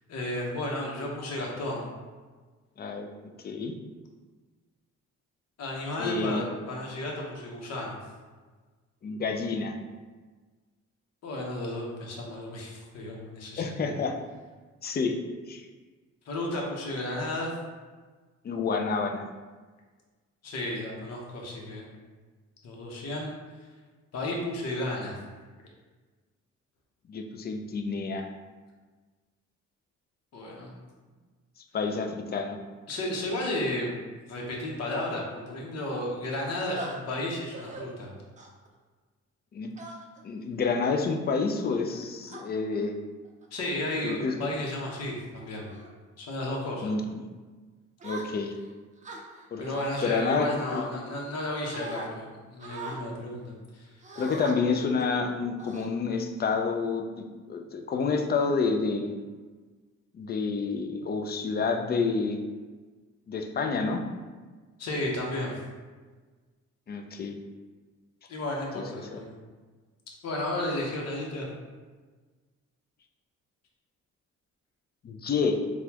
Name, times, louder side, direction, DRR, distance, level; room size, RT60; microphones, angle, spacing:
voice 1, 0.1-1.9 5.6-8.0 11.2-13.9 16.3-17.5 20.4-21.8 22.6-23.3 24.1-25.1 30.3-30.7 32.9-33.9 34.3-38.1 43.5-45.7 46.2-46.9 49.6-53.9 64.8-65.6 68.3-69.3 70.2-71.5, left 1 dB, 55° left, -2 dB, 0.9 m, -33 dB
voice 2, 2.8-3.1 3.4-3.7 6.0-6.4 9.0-9.7 13.6-14.1 14.8-15.2 15.5-15.7 18.4-19.3 27.1-28.3 31.7-32.6 39.5-39.7 40.2-43.0 44.0-44.4 46.8-47.2 48.0-48.5 49.5-49.6 50.0-50.8 54.2-59.2 60.1-62.4 63.3-64.0 66.9-67.4 68.7-68.8 69.1-69.2 75.0-75.6, left 4 dB, 35° left, 4 dB, 0.4 m, -29 dB
sound 1, 36.7-36.9 37.5-37.8 38.4-38.7 39.8-40.2 40.8-41.1 41.8-42.4 43.2-43.5 44.0-44.3 44.8-45.1 45.6-45.9 46.4-46.7 48.0-48.6 49.0-50.0 50.6-51.4 51.7-52.1 52.6-53.0 54.0-54.5 55.0-55.2 55.6-56.3, right 2 dB, 25° right, 0.5 m, -42 dB
4.0 x 2.2 x 2.8 m, 1.4 s
cardioid pair, 90°, 30 cm